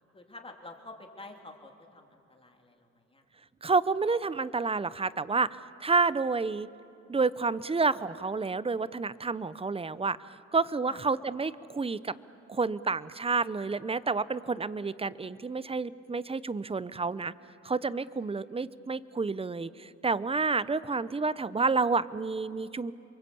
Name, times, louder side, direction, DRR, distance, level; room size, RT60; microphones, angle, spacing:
voice 1, 0.1-3.2 10.9-11.0, left 2 dB, 20° left, 3 dB, 3.3 m, -48 dB
voice 2, 3.6-6.7 7.1-12.1 12.5-17.3 17.6-22.9, right 4 dB, 20° right, 17 dB, 0.7 m, -29 dB
28.0 x 23.5 x 8.5 m, 2.8 s
cardioid pair, 90°, 30 cm